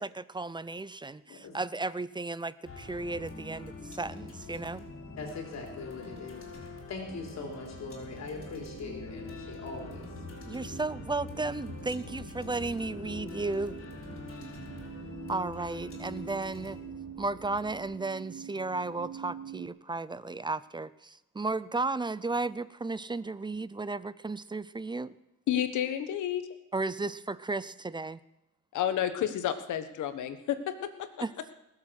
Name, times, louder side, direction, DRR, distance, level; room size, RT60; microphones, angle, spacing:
voice 1, 0.0-4.9 10.5-13.8 15.3-16.8 17.2-25.1 26.7-28.2 31.2-31.3, right 3 dB, 15° right, 18 dB, 0.5 m, -34 dB
sound 1, 2.6-17.9, left 3 dB, 45° left, 4.7 m, -45 dB
voice 2, 5.2-10.1, left 4 dB, 60° left, 2 dB, 3.6 m, -41 dB
sound 2, 7.0-19.7, right 7 dB, 55° right, 1.8 m, -47 dB
voice 3, 25.5-26.4 28.7-31.1, left 10 dB, 75° left, 10 dB, 1.4 m, -30 dB
20.5 x 7.6 x 6.3 m, 0.93 s
cardioid pair, 90°, 30 cm